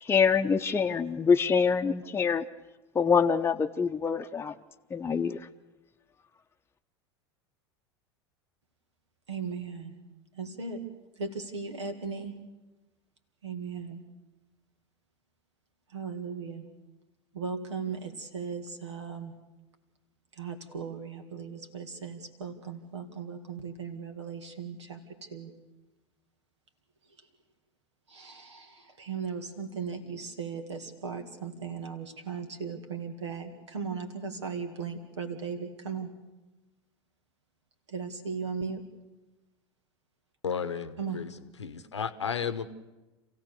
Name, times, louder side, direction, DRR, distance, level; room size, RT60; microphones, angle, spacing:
voice 1, 0.0-2.5 2.9-4.5 4.9-5.5, left 6 dB, 15° left, 5 dB, 0.8 m, -25 dB
voice 2, 9.3-10.0 10.3-10.8 11.2-12.4 13.4-14.0 15.9-16.7 17.3-19.3 20.3-25.5 28.1-36.1 37.9-38.8 41.0-41.3, right 5 dB, 80° right, 6 dB, 2.2 m, -37 dB
voice 3, 40.4-41.3 41.6-42.7, left 7 dB, 90° left, 13 dB, 1.0 m, -33 dB
27.0 x 16.0 x 6.8 m, 1.1 s
hypercardioid pair, 85°, 14 cm